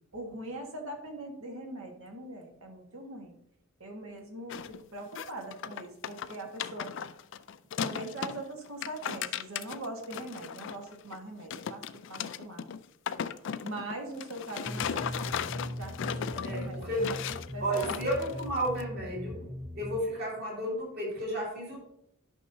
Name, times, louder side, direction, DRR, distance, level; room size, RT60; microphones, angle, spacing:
voice 1, 0.1-3.3 3.8-6.9 7.8-11.8 12.1-12.7 13.6-17.2 17.5-18.0, right 1 dB, 80° right, 2 dB, 1.5 m, -41 dB
sound 1, 4.5-4.8 5.1-8.4 8.7-11.2 11.5-18.8, left 8 dB, 60° left, 0.4 m, -37 dB
sound 2, 14.7-20.0, left 1 dB, 5° left, 0.5 m, -40 dB
voice 2, 16.4-17.1 17.6-19.5 19.7-21.8, right 1 dB, 50° right, -3 dB, 2.5 m, -32 dB
11.5 x 5.6 x 2.7 m, 0.74 s
head